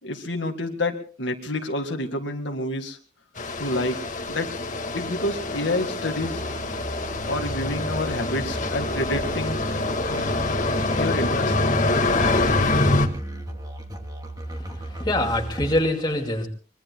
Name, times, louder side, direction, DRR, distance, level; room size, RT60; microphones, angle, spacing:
voice 1, 0.0-3.0 3.6-4.0 4.3-4.5 4.9-6.5 7.3-9.9 11.0-11.5, left 1 dB, 70° left, 3 dB, 2.0 m, -28 dB
sound 1, 3.4-13.1, left 2 dB, 40° left, 1.9 m, -25 dB
Musical instrument, 6.2-15.8, right 1 dB, 20° right, 2.4 m, -36 dB
voice 2, 14.4-16.5, left 1 dB, 20° left, 1 dB, 2.5 m, -25 dB
24.5 x 23.0 x 2.3 m, 0.39 s
head